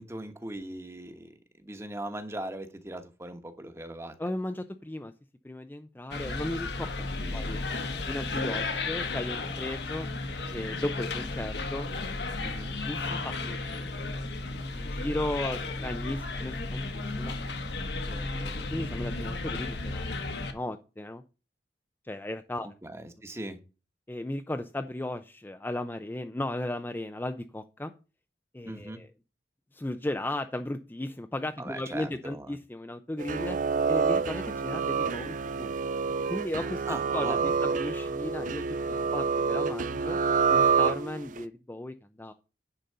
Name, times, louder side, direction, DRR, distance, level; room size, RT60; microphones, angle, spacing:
voice 1, 0.0-4.1 6.8-7.5 12.4-12.8 22.6-23.6 28.6-29.0 31.6-32.6 36.9-37.5, right 1 dB, 15° right, 8 dB, 1.1 m, -40 dB
voice 2, 4.2-5.1 5.4-6.9 7.3-7.6 8.0-10.1 10.5-11.9 12.7-13.6 14.7-17.3 18.0-20.1 20.4-21.2 22.0-22.7 24.1-27.9 28.5-29.1 29.7-33.6 33.9-35.7 36.3-36.8 37.1-40.2 40.5-42.3, left 1 dB, 10° left, 8 dB, 0.4 m, -36 dB
sound 1, 6.1-20.5, left 3 dB, 70° left, 1.3 m, -34 dB
sound 2, 33.2-41.4, right 5 dB, 45° right, 0.5 m, -27 dB
10.0 x 4.0 x 6.7 m, 0.32 s
head